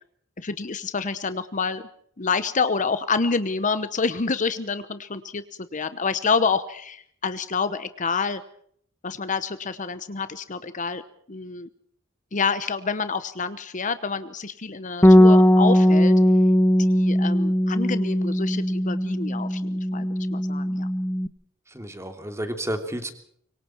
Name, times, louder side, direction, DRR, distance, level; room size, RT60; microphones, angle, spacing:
voice 1, 0.4-1.8 2.2-5.4 5.7-8.4 9.0-11.0 11.3-11.7 12.3-16.1 16.8-20.9, left 5 dB, 40° left, 12 dB, 0.9 m, -28 dB
Bass guitar, 15.0-21.3, equal, 10° left, 1.0 m, -19 dB
voice 2, 21.7-23.1, right 1 dB, 15° right, 6 dB, 3.0 m, -31 dB
25.5 x 24.0 x 4.5 m, 0.64 s
head